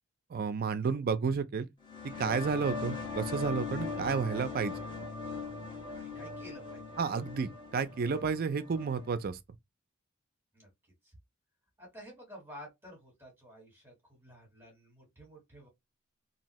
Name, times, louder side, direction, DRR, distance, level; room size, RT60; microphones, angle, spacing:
voice 1, 0.3-1.7 2.2-4.7 7.0-9.4, right 5 dB, 45° right, 0.4 m, -31 dB
sound 1, 1.8-9.2, left 4 dB, 20° left, 1.0 m, -40 dB
voice 2, 5.9-6.8 10.5-10.7 11.0-11.2 11.8-15.7, equal, 10° right, 1.6 m, -51 dB
2.8 x 2.6 x 3.0 m
head